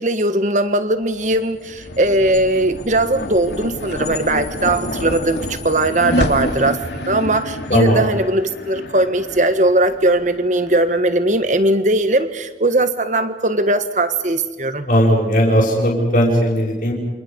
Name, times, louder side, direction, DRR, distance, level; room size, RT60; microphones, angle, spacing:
voice 1, 0.0-14.9, right 1 dB, 45° right, 10 dB, 1.6 m, -19 dB
sound 1, 1.1-11.7, left 1 dB, 80° left, 2.9 m, -28 dB
voice 2, 7.7-8.0 14.9-16.9, equal, 50° left, -6 dB, 5.9 m, -16 dB
29.0 x 27.5 x 5.4 m, 1.1 s
head